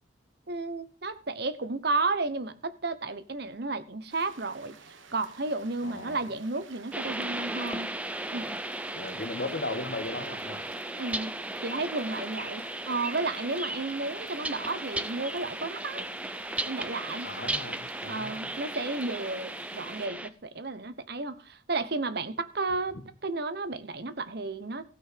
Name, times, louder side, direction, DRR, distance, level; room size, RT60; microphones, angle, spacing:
voice 1, 0.5-7.9 8.3-8.6 11.0-11.3 11.6-16.1 16.6-17.3 18.1-24.8, right 3 dB, 55° right, 1.0 m, -33 dB
sound 1, 4.1-20.1, right 5 dB, 75° right, 1.4 m, -53 dB
voice 2, 5.8-6.2 8.9-10.6 17.2-18.6, left 2 dB, 55° left, 1.6 m, -37 dB
sound 2, 6.9-20.3, right 1 dB, 5° right, 0.6 m, -36 dB
16.0 x 5.6 x 6.6 m
head